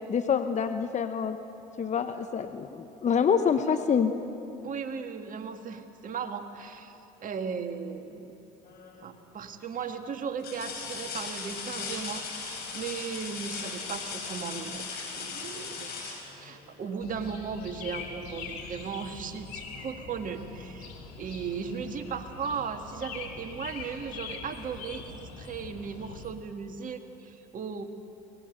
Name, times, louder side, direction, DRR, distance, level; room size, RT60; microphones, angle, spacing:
voice 1, 0.1-1.4 1.8-4.1, left 7 dB, 35° left, 8 dB, 1.1 m, -26 dB
voice 2, 4.6-8.3 9.0-27.8, right 6 dB, 45° right, 6 dB, 1.8 m, -37 dB
sound 1, 8.6-9.1 9.7-9.8 10.4-17.1 18.9-19.0 19.5-20.5 21.8-21.9, left 5 dB, 55° left, 5.3 m, -38 dB
sound 2, 17.0-26.3, left 5 dB, 80° left, 2.8 m, -43 dB
24.5 x 19.0 x 6.7 m, 2.8 s
hypercardioid pair, 65°, 19 cm